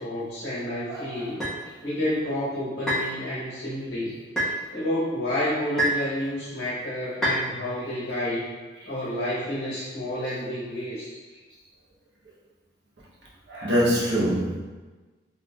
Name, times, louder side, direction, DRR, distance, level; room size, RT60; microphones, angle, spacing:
voice 1, 0.0-1.4 1.8-4.1 4.7-8.5 8.8-11.1, left 1 dB, 65° left, -9 dB, 1.0 m, -29 dB
voice 2, 0.9-1.3 13.5-14.6, equal, 70° right, -6 dB, 0.9 m, -24 dB
sound 1, 1.4-1.6 2.9-3.1 4.4-4.6 5.8-6.1 7.2-7.4, equal, ahead, 1.2 m, -25 dB
3.8 x 3.4 x 2.4 m, 1.3 s
head